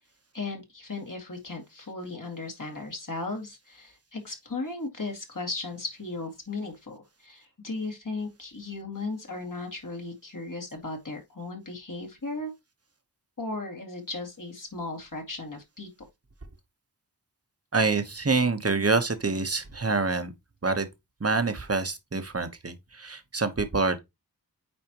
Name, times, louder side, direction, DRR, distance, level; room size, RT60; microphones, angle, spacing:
voice 1, 0.3-12.5 13.4-15.9, left 3 dB, 50° left, 2.2 m, -36 dB
voice 2, 17.7-20.3 20.6-20.9 21.2-24.0, right 3 dB, 35° right, 1.1 m, -26 dB
8.8 x 4.3 x 3.0 m
wide cardioid pair, 65°, 40 cm